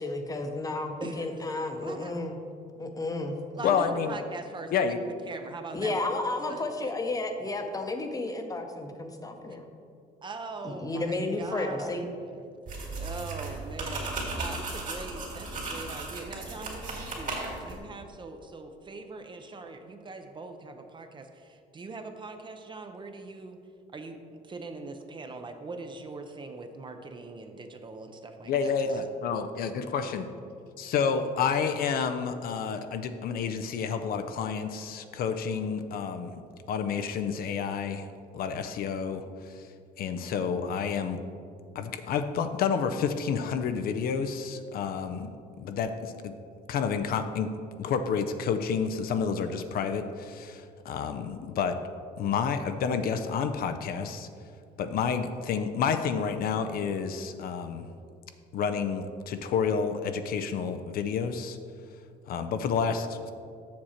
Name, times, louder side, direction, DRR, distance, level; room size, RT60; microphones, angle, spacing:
voice 1, 0.0-2.4 2.8-3.4 5.7-9.7 10.6-12.0, left 2 dB, 20° left, 5 dB, 0.8 m, -32 dB
voice 2, 1.0-1.5 1.8-2.1 3.6-6.9 10.2-23.6 23.9-24.2 24.4-29.0, right 3 dB, 30° right, 6 dB, 0.6 m, -42 dB
voice 3, 3.6-4.2 4.7-5.0 28.5-30.3 30.8-36.4 36.7-38.1 38.3-39.6 40.0-41.2 41.7-45.3 45.6-46.3 46.7-47.5 47.8-51.8 52.2-54.3 54.8-57.9 58.5-61.6 62.3-63.3, left 6 dB, 60° left, 8 dB, 0.5 m, -29 dB
sound 1, 12.7-17.8, right 2 dB, 50° right, 2.1 m, -36 dB
7.3 x 6.3 x 4.3 m, 2.3 s
cardioid pair, 110°, 17 cm